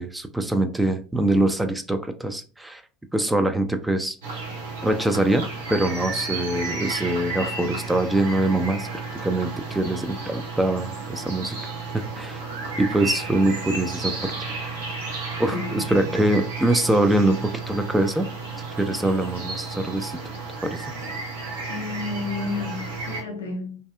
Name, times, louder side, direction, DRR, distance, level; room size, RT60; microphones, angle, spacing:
voice 1, 0.0-2.8 3.1-4.2 4.8-5.4 5.7-8.9 9.2-11.6 11.9-12.4 12.8-14.3 15.4-18.3 18.8-20.2 20.6-20.9, right 1 dB, 5° right, 0.3 m, -23 dB
sound 1, 4.2-23.2, right 3 dB, 75° right, 0.8 m, -33 dB
voice 2, 15.5-16.2 21.7-23.8, left 3 dB, 75° left, 0.6 m, -31 dB
2.6 x 2.3 x 2.2 m
figure-of-eight pair, 70°, 0 cm